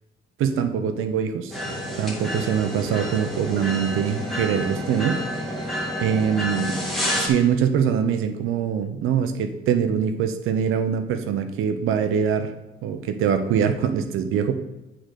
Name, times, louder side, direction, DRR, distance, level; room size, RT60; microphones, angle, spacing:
voice 1, 0.4-1.6 2.0-5.2 6.0-6.8 7.2-12.5 12.8-14.5, right 7 dB, 85° right, 8 dB, 0.8 m, -23 dB
sound 1, 1.5-7.3, equal, ahead, 2.1 m, -29 dB
8.7 x 3.9 x 6.5 m, 1.0 s
cardioid pair, 105°, 20 cm